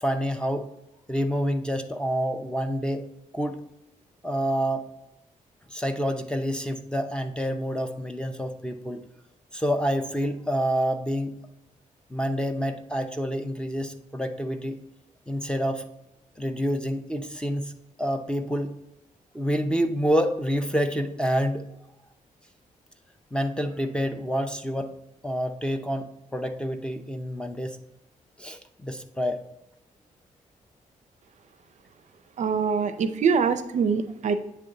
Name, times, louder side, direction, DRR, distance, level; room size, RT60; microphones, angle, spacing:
voice 1, 0.0-0.7 1.1-3.1 3.3-3.6 4.2-4.9 5.7-9.0 9.5-11.4 12.1-14.8 15.3-15.8 16.4-17.7 18.0-18.7 19.3-21.7 23.3-24.9 25.2-27.8 28.4-29.4, equal, 5° left, 6 dB, 0.6 m, -28 dB
voice 2, 32.4-34.3, right 6 dB, 60° right, 10 dB, 0.5 m, -24 dB
8.4 x 3.3 x 3.8 m, 0.85 s
cardioid pair, 95°, 14 cm